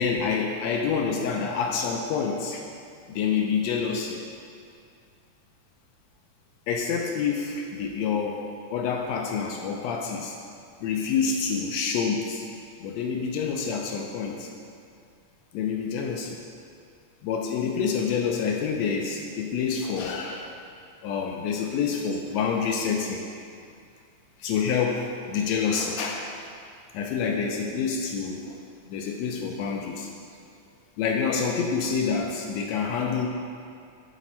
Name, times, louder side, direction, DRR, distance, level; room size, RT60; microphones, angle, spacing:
voice 1, 0.0-2.6 3.1-4.2 6.7-8.4 8.7-10.4 10.8-12.5 12.8-14.5 15.5-16.4 17.2-20.5 21.0-23.3 24.4-26.5 26.9-28.6 28.9-30.1 31.0-33.3, left 6 dB, 80° left, 1 dB, 1.5 m, -27 dB
9.0 x 4.1 x 4.3 m, 2.3 s
omnidirectional pair, 3.5 m